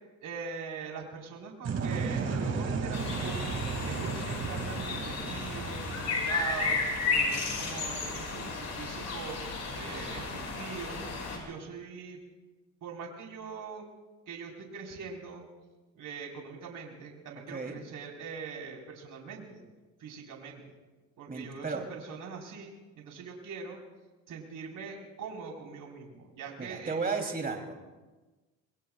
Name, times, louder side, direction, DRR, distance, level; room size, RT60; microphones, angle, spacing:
voice 1, 0.2-3.4 3.8-6.8 7.1-9.4 9.7-11.0 11.3-12.2 12.8-13.9 14.3-15.4 15.9-19.6 20.0-20.8 21.2-23.8 24.3-27.3, right 5 dB, 60° right, 0 dB, 4.6 m, -42 dB
sound 1, 1.6-7.5, right 5 dB, 40° right, 2.5 m, -35 dB
sound 2, 2.9-11.4, left 4 dB, 45° left, 5.7 m, -33 dB
voice 2, 21.3-21.9 26.6-27.7, right 4 dB, 25° right, 2 dB, 3.3 m, -34 dB
27.0 x 22.0 x 2.4 m, 1.2 s
cardioid pair, 95°, 37 cm